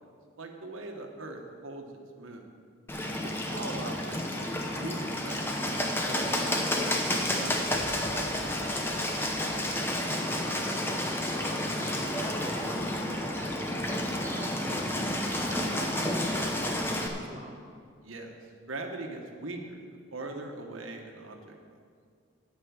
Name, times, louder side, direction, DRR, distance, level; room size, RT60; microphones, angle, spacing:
voice 1, 0.4-1.9 2.1-2.5 3.2-8.6 18.0-18.3 18.7-21.6, right 2 dB, 90° right, 3 dB, 1.3 m, -41 dB
Bird, 2.9-17.1, left 1 dB, 10° left, 0.8 m, -30 dB
voice 2, 3.5-3.8 10.5-12.5 13.0-17.6, right 1 dB, 35° right, 1 dB, 1.3 m, -48 dB
11.5 x 5.5 x 8.6 m, 2.1 s
head